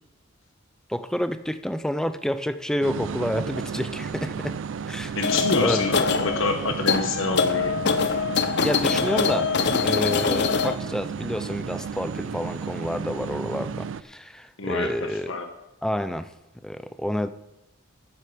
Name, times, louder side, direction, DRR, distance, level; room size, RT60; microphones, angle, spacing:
voice 1, 0.9-4.6 4.9-5.1 5.6-5.9 8.6-9.5 9.8-15.3 15.8-16.3 16.6-17.3, equal, 5° left, 11 dB, 0.4 m, -29 dB
sound 1, 2.8-14.0, right 6 dB, 70° right, 0.4 m, -33 dB
voice 2, 5.1-7.8 14.6-15.5, left 3 dB, 80° left, 6 dB, 1.2 m, -27 dB
sound 2, 5.2-10.8, left 5 dB, 55° left, 0.6 m, -24 dB
14.0 x 7.9 x 5.0 m, 0.96 s
head